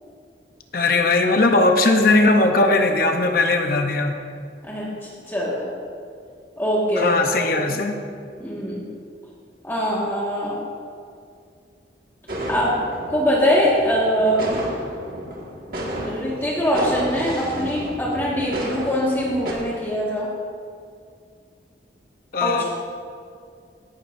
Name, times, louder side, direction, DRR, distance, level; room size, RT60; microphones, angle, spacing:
voice 1, 0.7-4.1 7.0-7.9 22.3-22.6, left 2 dB, 55° left, 4 dB, 0.8 m, -18 dB
voice 2, 4.6-5.7 6.6-7.8 8.4-8.8 9.6-10.6 12.5-12.8 13.1-14.4 16.0-20.3 22.4-22.6, equal, 10° left, -6 dB, 1.7 m, -23 dB
sound 1, 12.3-19.5, equal, 50° right, 1.8 m, -32 dB
17.0 x 11.0 x 2.6 m, 2.3 s
head